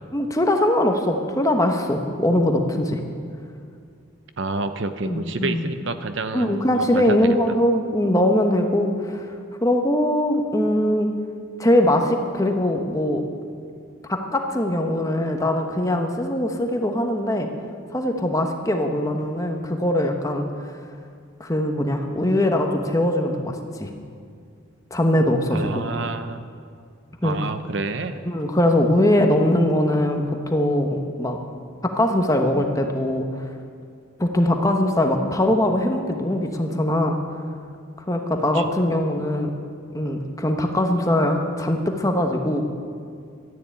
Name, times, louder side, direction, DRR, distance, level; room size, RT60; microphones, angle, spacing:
voice 1, 0.1-3.0 5.0-5.6 6.3-9.3 9.6-11.1 11.6-13.2 14.1-17.5 17.9-20.5 21.4-23.9 24.9-25.8 27.2-27.4 28.3-31.4 31.8-33.5 34.2-37.2 38.1-39.5 39.9-42.6, left 1 dB, 15° left, 4 dB, 1.1 m, -21 dB
voice 2, 4.4-7.4 25.5-26.4 27.2-28.2 38.5-38.7, right 3 dB, 60° right, 10 dB, 0.7 m, -29 dB
12.5 x 10.5 x 9.1 m, 2.3 s
head